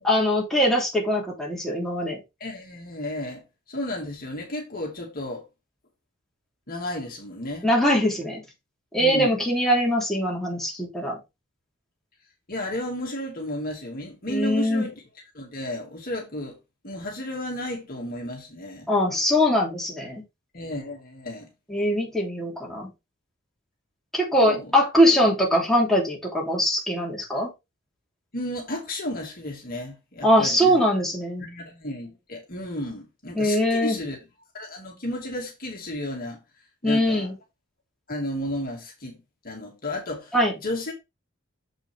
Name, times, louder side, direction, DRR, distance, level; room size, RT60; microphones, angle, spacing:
voice 1, 0.0-2.2 7.6-8.4 8.9-11.2 14.3-14.8 18.9-20.2 21.7-22.9 24.1-27.5 30.2-31.4 33.3-34.0 36.8-37.3 40.3-40.5, equal, ahead, 3.1 m, -22 dB
voice 2, 2.4-3.4 3.7-5.4 6.7-7.7 9.0-9.3 12.5-15.0 15.3-16.6 16.8-18.9 20.5-21.5 24.4-24.7 28.3-30.8 31.4-34.2 34.5-36.4 36.8-37.3 38.1-39.2 39.4-40.3 40.6-40.9, left 1 dB, 45° left, 2.2 m, -33 dB
7.3 x 6.6 x 3.5 m
head